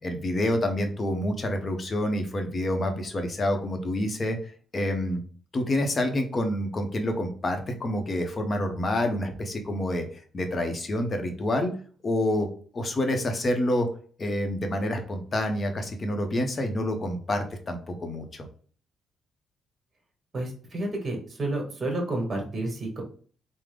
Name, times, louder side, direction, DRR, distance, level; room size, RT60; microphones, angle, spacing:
voice 1, 0.0-5.2 5.5-11.7 12.0-12.5 12.7-13.9 14.2-18.5, left 1 dB, 35° left, 5 dB, 0.7 m, -28 dB
voice 2, 20.3-23.0, right 2 dB, 35° right, 1 dB, 1.3 m, -30 dB
3.6 x 2.0 x 3.4 m, 0.43 s
cardioid pair, 100°, 0 cm